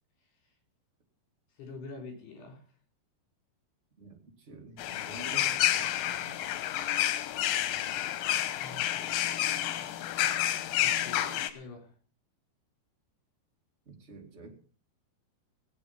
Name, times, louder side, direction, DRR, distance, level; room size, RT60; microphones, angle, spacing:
voice 1, 1.6-2.6 8.6-9.5 10.8-12.0, left 3 dB, 70° left, 3 dB, 6.1 m, -46 dB
voice 2, 4.0-6.4 13.8-14.5, right 4 dB, 30° right, 1 dB, 1.2 m, -48 dB
sound 1, 4.8-11.5, left 12 dB, 90° left, 3.3 m, -30 dB
18.0 x 8.7 x 5.7 m, 0.41 s
omnidirectional pair, 5.0 m